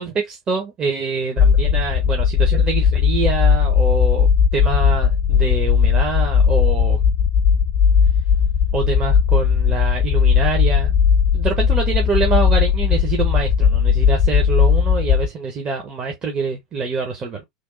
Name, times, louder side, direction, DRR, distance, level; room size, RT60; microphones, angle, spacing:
voice 1, 0.0-7.0 8.7-10.9 11.3-17.4, right 4 dB, 30° right, 1.1 m, -25 dB
sound 1, 1.4-15.3, left 7 dB, 35° left, 0.5 m, -17 dB
3.4 x 2.3 x 3.9 m
figure-of-eight pair, 80°, 3 cm